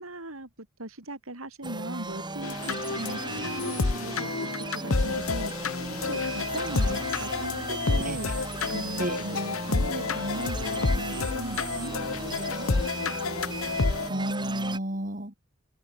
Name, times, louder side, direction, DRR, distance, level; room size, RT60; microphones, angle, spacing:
voice 1, 0.0-8.3 8.7-12.7, right 1 dB, 80° right, 4.2 m, -39 dB
sound 1, 1.6-14.8, right 2 dB, 20° right, 7.2 m, -36 dB
sound 2, 2.4-14.1, left 4 dB, 75° left, 1.0 m, -29 dB
voice 2, 14.1-15.4, right 1 dB, 40° right, 5.9 m, -31 dB
head